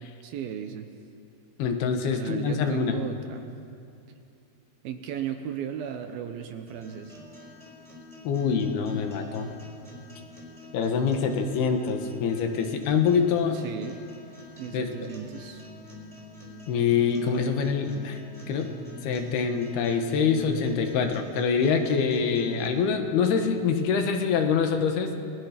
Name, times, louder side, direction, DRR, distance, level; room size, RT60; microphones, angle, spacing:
voice 1, 0.0-0.9 2.1-3.5 4.8-7.2 13.5-14.0 14.6-15.7, right 9 dB, 70° right, 7 dB, 2.6 m, -36 dB
voice 2, 1.6-3.0 8.2-9.5 10.7-13.6 14.7-14.9 16.7-18.2 18.5-18.7 19.0-25.1, left 6 dB, 70° left, 5 dB, 3.2 m, -25 dB
sound 1, 6.7-22.7, left 2 dB, 10° right, 3.5 m, -45 dB
29.0 x 20.0 x 5.9 m, 2.6 s
omnidirectional pair, 4.9 m